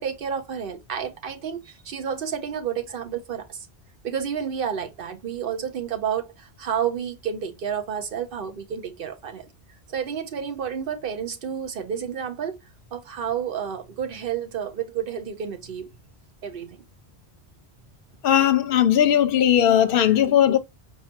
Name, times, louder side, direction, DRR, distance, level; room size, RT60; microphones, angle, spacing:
voice 1, 0.0-3.7 4.0-9.5 9.9-12.6 12.9-15.9 16.4-16.8, right 8 dB, 60° right, 1.0 m, -30 dB
voice 2, 18.2-20.6, left 10 dB, 60° left, 0.8 m, -18 dB
4.8 x 2.7 x 2.8 m
omnidirectional pair, 1.1 m